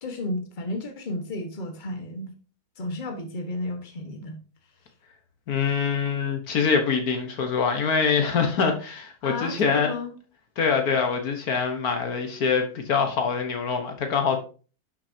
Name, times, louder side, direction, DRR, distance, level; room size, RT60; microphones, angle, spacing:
voice 1, 0.0-2.3 2.8-4.4 9.2-10.1, left 2 dB, 30° left, 5 dB, 1.4 m, -32 dB
voice 2, 5.5-9.9 10.6-14.4, left 5 dB, 70° left, 5 dB, 1.6 m, -24 dB
11.0 x 6.2 x 2.7 m, 0.37 s
omnidirectional pair, 1.6 m